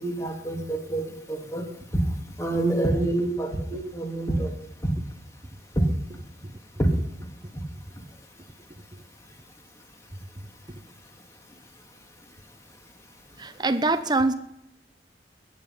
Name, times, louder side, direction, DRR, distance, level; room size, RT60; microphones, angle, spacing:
voice 1, 0.0-1.7 1.9-2.0 2.4-4.5 5.8-5.9 6.8-6.9, right 1 dB, 15° left, 2 dB, 2.5 m, -26 dB
voice 2, 13.4-14.3, right 2 dB, 25° right, 10 dB, 0.9 m, -25 dB
20.5 x 9.8 x 5.7 m, 0.81 s
head